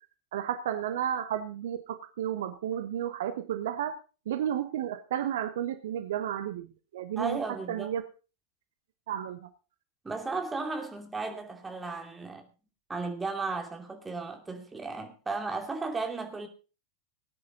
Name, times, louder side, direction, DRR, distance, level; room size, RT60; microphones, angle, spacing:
voice 1, 0.3-3.9 4.3-7.4 7.7-8.0 9.1-9.5, right 10 dB, 55° right, 1.0 m, -32 dB
voice 2, 7.2-8.0 10.0-12.5 12.9-16.5, right 3 dB, 10° right, 2.5 m, -35 dB
18.5 x 9.8 x 3.9 m
figure-of-eight pair, 90°, 0 cm